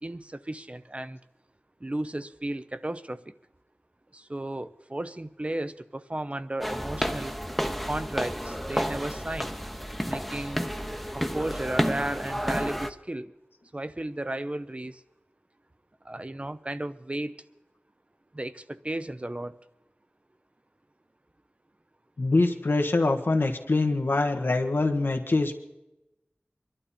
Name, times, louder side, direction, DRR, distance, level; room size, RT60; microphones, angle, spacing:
voice 1, 0.0-1.2 1.8-3.2 4.1-7.4 7.8-9.5 10.0-10.6 11.1-13.3 13.7-15.0 16.1-17.3 18.3-19.5, right 1 dB, 35° right, 13 dB, 0.7 m, -34 dB
sound 1, 6.6-12.9, equal, ahead, 0.9 m, -31 dB
voice 2, 22.2-25.5, left 2 dB, 85° left, 4 dB, 1.5 m, -24 dB
24.0 x 12.0 x 4.3 m, 0.96 s
wide cardioid pair, 50°, 4 cm